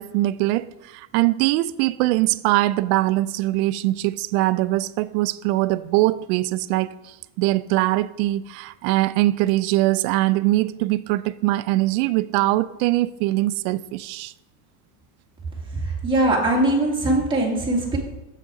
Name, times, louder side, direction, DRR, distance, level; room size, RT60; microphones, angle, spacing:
voice 1, 0.0-14.3, right 17 dB, 65° right, 0.5 m, -22 dB
voice 2, 15.8-18.0, right 2 dB, 10° right, 2.0 m, -21 dB
7.6 x 6.4 x 4.8 m
cardioid pair, 150°, 47 cm